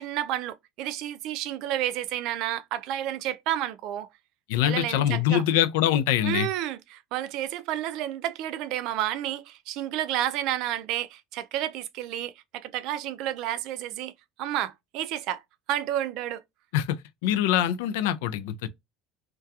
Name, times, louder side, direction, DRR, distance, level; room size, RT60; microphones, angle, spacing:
voice 1, 0.0-4.1 4.6-5.4 6.2-14.1 14.4-15.4 15.7-16.4, right 12 dB, 55° right, 0.3 m, -31 dB
voice 2, 4.5-6.5 16.7-18.7, left 11 dB, 85° left, 0.3 m, -24 dB
2.3 x 2.2 x 2.6 m
cardioid pair, 150°, 0 cm